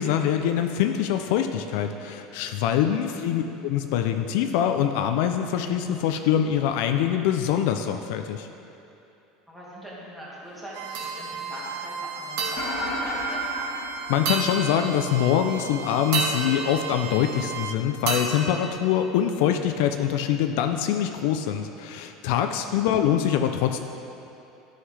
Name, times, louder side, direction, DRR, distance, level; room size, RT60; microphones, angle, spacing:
voice 1, 0.0-8.5 14.1-23.8, left 9 dB, 65° left, 6 dB, 0.4 m, -24 dB
voice 2, 2.9-3.3 9.5-13.5 22.6-23.0, equal, 10° right, -7 dB, 1.7 m, -41 dB
Bowed string instrument, 10.7-17.8, right 7 dB, 85° right, 0.5 m, -37 dB
sound 1, 10.9-11.5 12.4-13.8 14.2-15.3 16.1-17.6 18.1-19.5, right 3 dB, 70° right, 1.4 m, -32 dB
sound 2, 12.6-15.2, equal, 45° left, 1.4 m, -32 dB
11.5 x 5.6 x 3.3 m, 2.8 s
cardioid pair, 165°, 0 cm